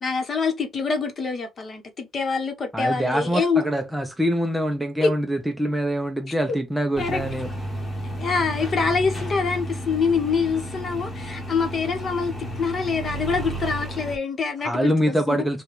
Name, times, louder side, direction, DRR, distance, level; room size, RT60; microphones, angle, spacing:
voice 1, 0.0-3.6 5.0-5.1 6.3-6.6 7.0-7.2 8.2-15.5, left 5 dB, 35° left, 0.9 m, -25 dB
voice 2, 2.7-7.5 14.6-15.6, equal, 5° right, 0.4 m, -24 dB
sound 1, 6.9-14.2, right 1 dB, 15° left, 1.1 m, -32 dB
4.8 x 2.2 x 3.0 m
cardioid pair, 160°, 0 cm